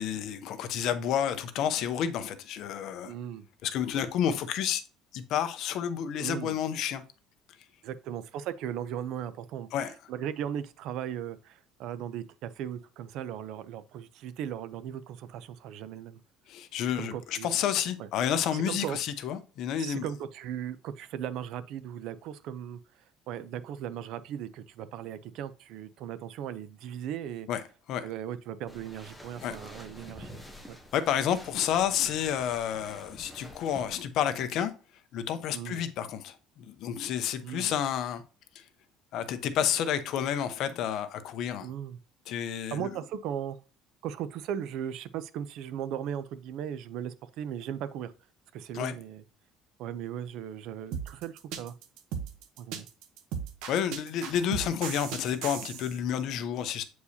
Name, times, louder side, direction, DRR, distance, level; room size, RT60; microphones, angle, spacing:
voice 1, 0.0-3.1 3.6-4.8 5.1-7.0 9.7-9.9 16.5-20.0 27.5-27.6 27.9-28.0 29.4-29.6 30.9-34.7 35.1-38.2 39.1-41.7 42.3-42.9 48.7-48.9 53.7-56.8, left 9 dB, 60° left, 0.7 m, -30 dB
voice 2, 3.0-3.4 6.2-6.6 7.8-16.2 17.0-17.5 18.0-18.1 18.5-19.0 19.8-22.8 23.3-27.5 28.0-30.8 35.5-35.9 37.4-37.7 41.6-42.0 42.7-43.6 44.0-48.1 48.5-49.2 49.8-51.7 52.6-52.9, right 9 dB, 65° right, 0.5 m, -37 dB
sound 1, 28.7-34.0, left 1 dB, ahead, 1.0 m, -48 dB
sound 2, 50.9-56.0, right 7 dB, 85° right, 0.9 m, -37 dB
8.3 x 4.7 x 2.8 m
cardioid pair, 150°, 0 cm